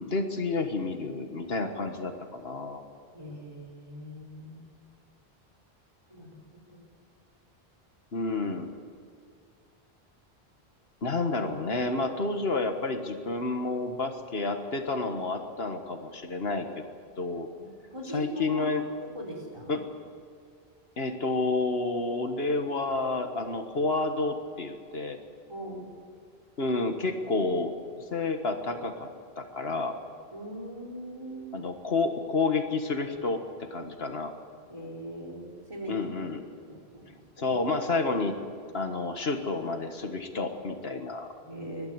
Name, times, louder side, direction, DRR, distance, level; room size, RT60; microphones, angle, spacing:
voice 1, 0.0-2.8 8.1-8.7 11.0-16.6 17.2-17.5 18.1-18.9 19.7-19.8 21.0-25.2 26.6-29.1 29.4-30.0 31.5-34.3 35.9-36.4 37.4-38.4 38.7-41.3, left 3 dB, 75° left, 6 dB, 1.8 m, -30 dB
voice 2, 3.1-4.7 6.1-6.4 6.7-6.9 17.6-18.7 19.0-19.8 25.5-25.9 30.3-31.6 34.7-36.0 36.6-37.1 37.4-37.6 41.4-41.9, right 1 dB, 30° right, -1 dB, 4.7 m, -41 dB
22.0 x 12.5 x 9.6 m, 2.3 s
omnidirectional pair, 1.1 m